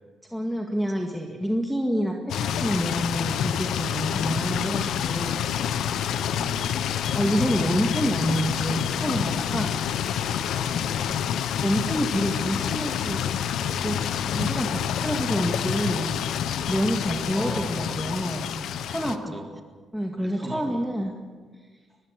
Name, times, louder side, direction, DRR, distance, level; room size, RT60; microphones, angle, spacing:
voice 1, 0.3-5.4 7.1-9.7 11.6-13.2 13.7-14.7 15.0-16.1 16.7-18.5 18.9-19.3 19.9-21.2, equal, ahead, 0 dB, 2.1 m, -27 dB
sound 1, 2.3-19.2, left 9 dB, 75° left, 1.0 m, -28 dB
voice 2, 6.1-6.8 10.5-11.4 17.3-18.0 19.0-19.5 20.2-20.8, right 2 dB, 20° right, 2 dB, 3.7 m, -40 dB
23.5 x 19.5 x 6.5 m, 1.5 s
cardioid pair, 90°, 0 cm